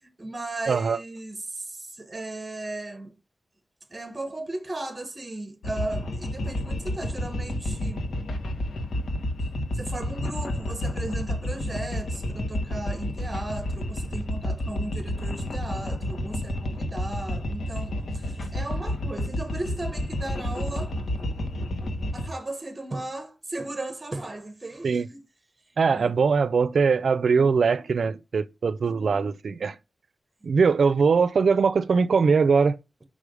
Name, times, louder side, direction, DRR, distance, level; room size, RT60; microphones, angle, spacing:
voice 1, 0.0-3.2 3.9-8.1 9.7-21.0 22.1-25.2 25.9-26.1, right 2 dB, 20° right, 1.2 m, -36 dB
voice 2, 0.7-1.0 24.8-25.1 25.8-29.8 30.4-32.8, right 5 dB, 70° right, 0.5 m, -21 dB
sound 1, 5.6-22.3, left 1 dB, 90° left, 1.4 m, -30 dB
5.3 x 4.9 x 5.2 m
wide cardioid pair, 170°, 0 cm